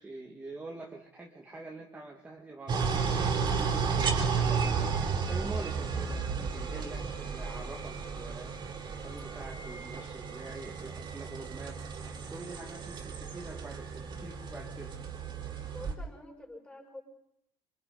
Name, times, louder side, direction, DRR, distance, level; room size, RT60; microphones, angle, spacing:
voice 1, 0.0-2.9 3.4-4.9 5.2-8.5 8.8-14.9, right 2 dB, 15° right, -1 dB, 1.9 m, -45 dB
sound 1, 2.7-15.9, right 5 dB, 35° right, 3.9 m, -33 dB
voice 2, 15.7-17.0, left 1 dB, 10° left, 1 dB, 6.4 m, -47 dB
28.0 x 25.0 x 4.0 m, 0.78 s
cardioid pair, 140°, 13 cm